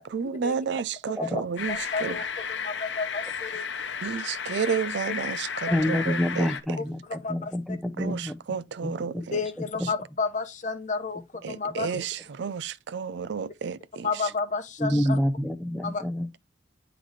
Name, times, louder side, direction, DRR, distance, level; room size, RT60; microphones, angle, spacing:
voice 1, 0.0-2.2 4.0-6.5 8.0-9.4 9.8-9.9 11.4-14.3 14.9-15.1, right 6 dB, 65° right, 0.4 m, -32 dB
sound 1, 1.6-6.6, left 6 dB, 75° left, 0.8 m, -33 dB
voice 2, 1.7-2.2 2.6-3.9 6.8-6.9 7.2-7.5 9.3-11.2 11.5-11.9 14.0-15.2 15.8-16.0, left 4 dB, 40° left, 0.8 m, -31 dB
voice 3, 5.7-8.4 8.8-9.2 9.8-9.9 14.8-16.3, equal, ahead, 0.6 m, -27 dB
9.8 x 3.9 x 3.2 m
head